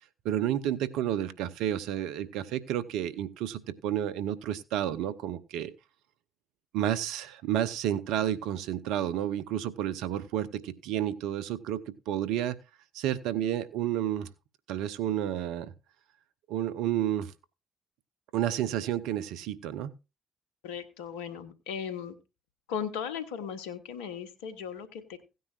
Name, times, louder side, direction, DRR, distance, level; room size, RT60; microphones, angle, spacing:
voice 1, 0.2-5.7 6.7-12.5 12.9-14.3 14.7-15.7 16.5-17.3 18.3-19.9, right 11 dB, 75° right, 0.8 m, -31 dB
voice 2, 20.6-22.2 22.7-25.2, left 7 dB, 85° left, 1.1 m, -37 dB
16.5 x 9.5 x 2.4 m
hypercardioid pair, 50°, 0 cm